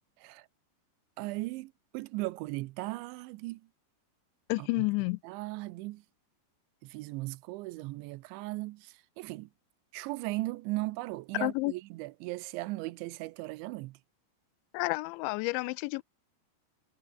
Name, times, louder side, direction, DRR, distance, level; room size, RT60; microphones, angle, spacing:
voice 1, 1.2-3.7 4.6-4.9 5.2-6.0 6.8-9.5 9.9-14.0, right 20 dB, 85° right, 3.1 m, -37 dB
voice 2, 4.5-5.2 11.4-11.7 14.7-16.0, left 24 dB, 90° left, 2.9 m, -30 dB
omnidirectional pair, 5.2 m